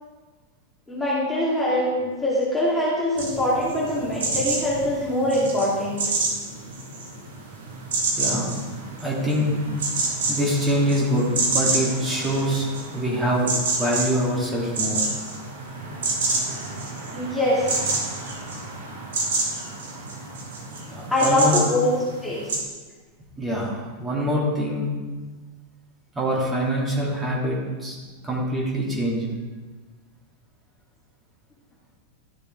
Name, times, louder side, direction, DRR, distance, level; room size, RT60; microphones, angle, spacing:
voice 1, 0.9-6.1 17.1-17.8 21.1-21.9 22.2-22.6, left 1 dB, 5° left, -8 dB, 2.6 m, -23 dB
sound 1, 3.2-22.6, right 3 dB, 60° right, 2.0 m, -29 dB
voice 2, 8.2-8.5 9.0-9.7 10.3-12.6 12.9-13.5 13.8-15.0 20.9-21.6 23.4-24.9 26.1-28.0 28.2-29.3, equal, 15° right, -4 dB, 3.1 m, -24 dB
13.0 x 6.7 x 3.9 m, 1.3 s
figure-of-eight pair, 90°, 0 cm